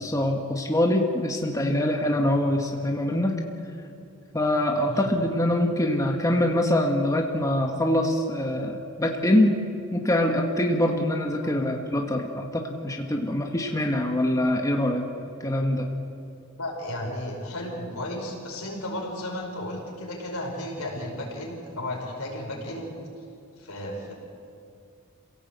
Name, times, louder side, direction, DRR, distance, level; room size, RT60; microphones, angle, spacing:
voice 1, 0.0-3.3 4.3-9.6 9.9-15.1 15.4-15.9, left 1 dB, 15° left, 1 dB, 1.6 m, -24 dB
voice 2, 16.6-22.9 23.6-24.1, left 1 dB, 80° left, 0 dB, 5.4 m, -34 dB
26.5 x 17.0 x 8.2 m, 2.5 s
head